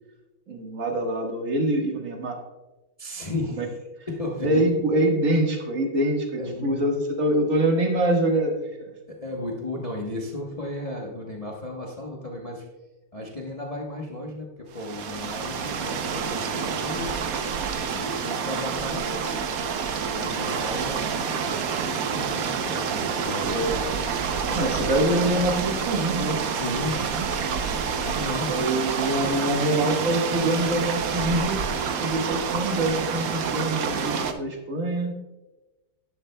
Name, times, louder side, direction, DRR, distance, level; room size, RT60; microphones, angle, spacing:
voice 1, 0.5-2.4 3.6-3.7 4.4-8.5 8.8-8.9 23.5-23.8 24.5-26.8 27.2-27.6 28.5-31.6 32.0-35.1, right 1 dB, 40° right, 1 dB, 1.6 m, -25 dB
voice 2, 3.0-3.6 4.1-4.6 6.4-6.7 9.1-12.7 13.1-17.1 17.9-19.5 20.1-23.8 24.5-24.9 26.5-27.0 28.0-28.6, left 2 dB, 75° left, -1 dB, 0.3 m, -34 dB
sound 1, 14.7-34.3, right 6 dB, 70° right, 0.8 m, -28 dB
11.0 x 10.5 x 2.2 m, 1.1 s
omnidirectional pair, 2.4 m